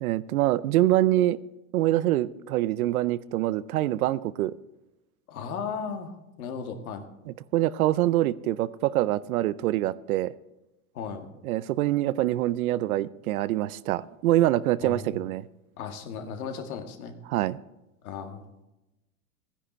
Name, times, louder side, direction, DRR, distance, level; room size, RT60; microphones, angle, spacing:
voice 1, 0.0-1.4 1.7-4.5 7.3-10.3 11.4-15.4 17.3-17.6, right 15 dB, 80° right, 18 dB, 0.6 m, -25 dB
voice 2, 5.3-7.0 10.9-11.3 14.8-15.2 15.8-17.1 18.0-18.5, left 6 dB, 90° left, 6 dB, 1.8 m, -36 dB
13.5 x 10.0 x 4.4 m, 0.98 s
supercardioid pair, 130°, 42 cm